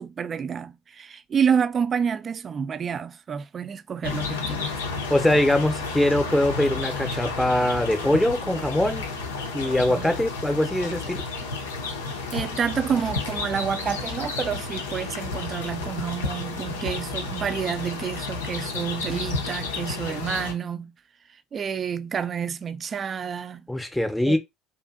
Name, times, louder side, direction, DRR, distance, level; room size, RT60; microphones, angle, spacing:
voice 1, 0.0-4.7 9.9-10.1 12.3-20.9 21.3-23.7 24.3-24.4, right 7 dB, 40° right, 0.3 m, -29 dB
sound 1, 4.0-20.5, left 4 dB, 85° left, 0.5 m, -31 dB
voice 2, 5.1-9.0 9.5-11.2 23.7-24.4, left 1 dB, 5° left, 0.7 m, -22 dB
2.5 x 2.5 x 2.4 m
hypercardioid pair, 65°, 0 cm